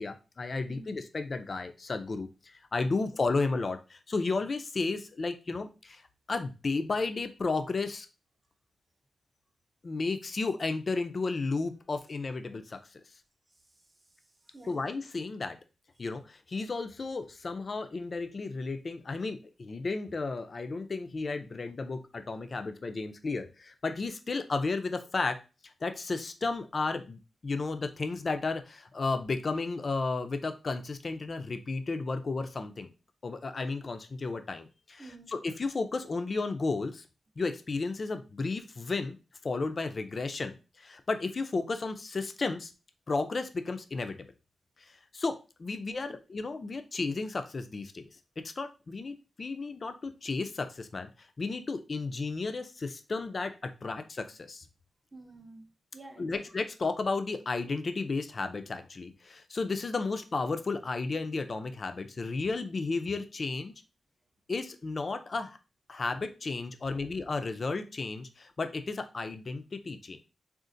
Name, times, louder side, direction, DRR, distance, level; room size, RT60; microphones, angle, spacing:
voice 1, 0.0-6.0 6.3-8.1 9.8-13.0 14.7-15.6 16.0-25.4 25.6-32.9 33.2-37.1 37.4-39.2 39.4-42.7 43.1-44.3 44.8-48.1 48.4-54.7 56.2-63.7 64.5-65.6 65.9-70.2, left 3 dB, 40° left, 0.4 m, -33 dB
voice 2, 35.0-35.3 46.0-46.1 55.1-56.5 66.8-67.1, right 2 dB, 25° right, 0.7 m, -50 dB
3.8 x 2.4 x 2.5 m
wide cardioid pair, 110°, 0 cm